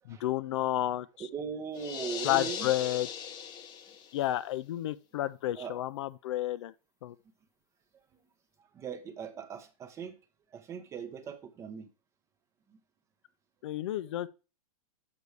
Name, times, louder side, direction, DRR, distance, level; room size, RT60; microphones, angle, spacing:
voice 1, 0.1-1.3 2.2-3.1 4.1-6.7 7.0-7.2 13.6-14.3, left 14 dB, 50° left, 0.5 m, -31 dB
voice 2, 1.2-2.7 5.5-5.8 8.6-10.2 10.5-11.9 12.7-12.8, right 7 dB, 15° right, 0.7 m, -40 dB
sound 1, 1.7-4.3, left 8 dB, 25° left, 0.7 m, -39 dB
6.9 x 5.4 x 4.7 m
hypercardioid pair, 155°, 19 cm